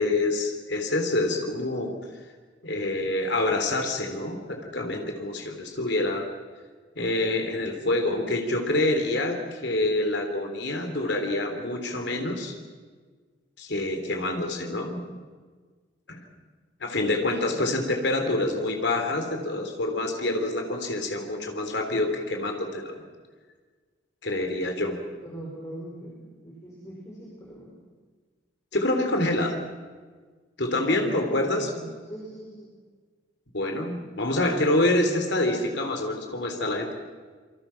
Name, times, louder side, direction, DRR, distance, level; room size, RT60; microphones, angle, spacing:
voice 1, 0.0-1.9 2.6-6.3 7.0-12.6 13.6-15.0 16.1-16.2 16.8-23.0 24.2-25.0 28.7-29.6 30.6-31.7 33.5-36.9, left 2 dB, 60° left, 3 dB, 3.7 m, -26 dB
voice 2, 17.3-17.8 25.2-27.7 30.7-31.2 31.5-32.7, right 1 dB, 15° left, -4 dB, 5.4 m, -41 dB
27.5 x 24.5 x 5.9 m, 1.5 s
head